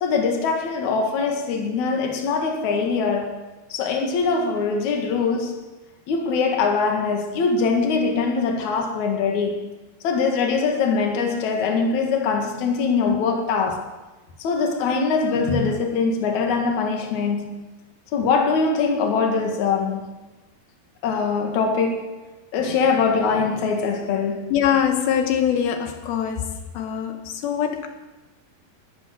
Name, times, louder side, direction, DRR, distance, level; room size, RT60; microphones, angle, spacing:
voice 1, 0.0-3.4 3.7-5.6 6.1-9.7 10.0-13.8 14.4-17.6 18.1-20.1 21.0-22.1 22.5-24.5, left 4 dB, 55° left, 2.9 m, -22 dB
voice 2, 24.5-26.5 26.7-27.9, left 9 dB, 85° left, 2.9 m, -23 dB
21.5 x 7.8 x 6.4 m
omnidirectional pair, 4.3 m